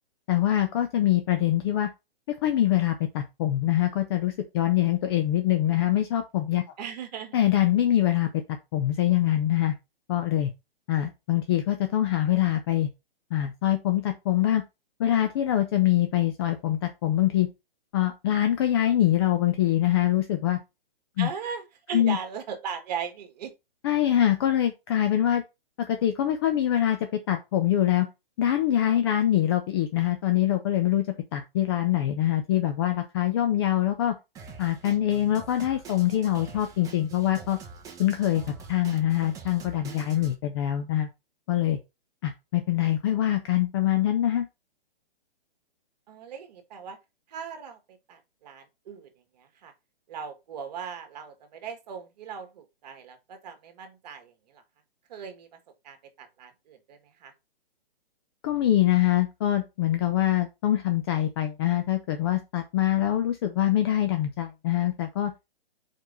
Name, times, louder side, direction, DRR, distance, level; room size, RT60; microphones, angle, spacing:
voice 1, 0.3-1.9 2.4-6.6 7.3-8.3 8.7-9.8 10.1-10.5 10.9-12.9 13.3-14.6 15.0-17.5 17.9-20.6 21.2-21.3 21.9-22.2 23.8-25.4 25.8-28.1 28.4-31.1 31.3-34.1 34.6-37.6 38.0-41.1 41.5-41.8 42.2-44.5 58.4-65.3, left 12 dB, 25° left, 0.6 m, -24 dB
voice 2, 6.8-7.3 21.2-23.5 46.1-47.0 47.3-49.7 50.1-54.6 55.1-55.6 55.8-57.3, right 6 dB, 45° right, 1.8 m, -39 dB
Drum kit, 34.3-40.3, right 5 dB, 10° right, 0.9 m, -45 dB
4.8 x 4.6 x 5.3 m
hypercardioid pair, 150°, 30 cm